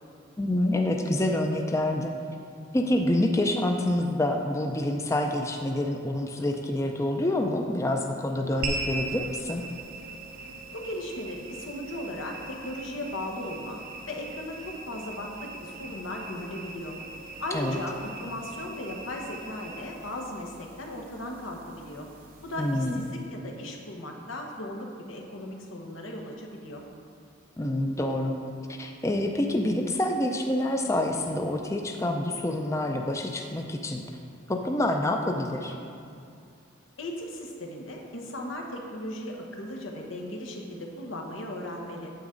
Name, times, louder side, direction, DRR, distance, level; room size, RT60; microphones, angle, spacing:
voice 1, 0.4-2.1 2.7-9.6 17.5-17.8 22.6-23.0 27.6-28.3 28.7-34.0 34.5-35.8, left 1 dB, 15° left, 3 dB, 0.4 m, -27 dB
sound 1, 8.6-23.2, right 2 dB, 45° right, 0.8 m, -40 dB
voice 2, 10.7-13.8 14.1-17.0 17.4-22.1 22.4-26.8 37.0-42.1, left 1 dB, 90° left, 1 dB, 1.2 m, -37 dB
9.2 x 7.3 x 3.8 m, 2.5 s
head